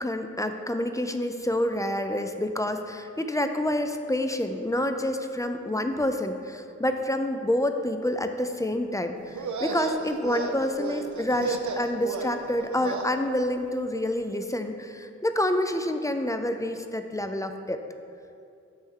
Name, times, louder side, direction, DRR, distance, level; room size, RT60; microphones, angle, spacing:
voice 1, 0.0-17.8, left 1 dB, 10° left, 7 dB, 0.3 m, -28 dB
sound 1, 9.3-13.1, right 4 dB, 80° right, 0.5 m, -33 dB
8.1 x 3.3 x 3.7 m, 2.5 s
wide cardioid pair, 55°, 29 cm